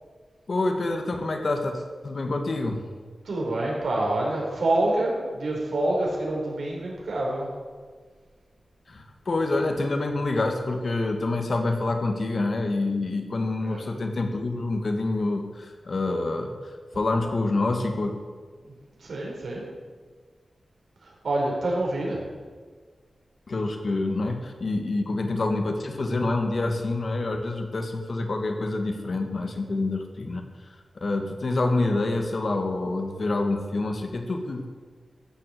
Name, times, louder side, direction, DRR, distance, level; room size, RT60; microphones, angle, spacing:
voice 1, 0.5-2.9 8.9-18.1 23.5-30.4 31.0-34.7, left 2 dB, 50° left, 5 dB, 1.6 m, -27 dB
voice 2, 3.2-7.5 13.6-13.8 18.6-18.7 19.0-19.6 21.0-22.2, right 1 dB, 80° right, -2 dB, 4.7 m, -27 dB
14.5 x 7.9 x 7.8 m, 1.5 s
wide cardioid pair, 140°, 0 cm